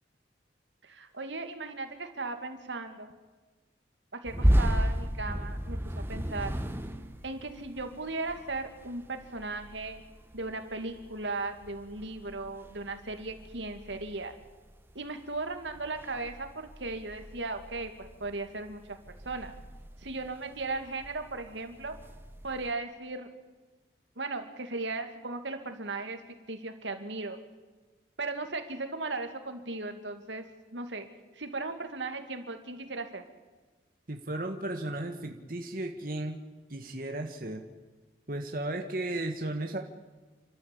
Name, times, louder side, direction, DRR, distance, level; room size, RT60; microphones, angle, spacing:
voice 1, 0.8-3.1 4.1-6.6 7.2-10.0 10.3-14.3 14.9-19.0 19.2-19.5 20.0-22.0 22.4-23.3 24.2-26.2 26.5-27.4 28.2-30.4 30.7-31.1 31.4-33.2, right 3 dB, 85° right, 7 dB, 2.5 m, -37 dB
sound 1, 4.2-14.9 15.2-22.7, equal, 10° right, 1.1 m, -34 dB
voice 2, 34.1-36.4 36.7-37.6 38.3-39.8, right 1 dB, 50° right, 4 dB, 1.5 m, -34 dB
29.5 x 13.0 x 8.6 m, 1.3 s
head